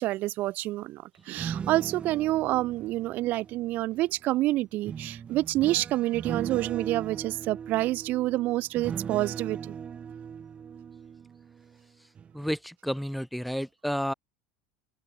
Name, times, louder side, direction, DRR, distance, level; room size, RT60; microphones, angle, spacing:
voice 1, 0.0-9.7, right 17 dB, 55° right, 2.0 m, -28 dB
sound 1, 1.2-4.1 4.8-11.8 12.1-12.5, right 7 dB, 30° right, 2.2 m, -39 dB
voice 2, 12.3-14.1, equal, ahead, 1.8 m, -31 dB
open air
supercardioid pair, 100°, 4 cm